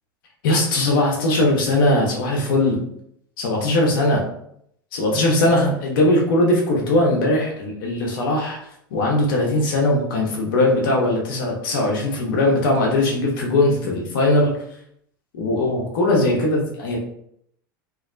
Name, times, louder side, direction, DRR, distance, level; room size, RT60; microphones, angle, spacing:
voice 1, 0.4-2.8 3.4-4.2 4.9-8.6 8.9-14.5 15.3-17.0, left 1 dB, 65° left, -1 dB, 0.8 m, -20 dB
2.6 x 2.1 x 2.5 m, 0.71 s
hypercardioid pair, 85°, 12 cm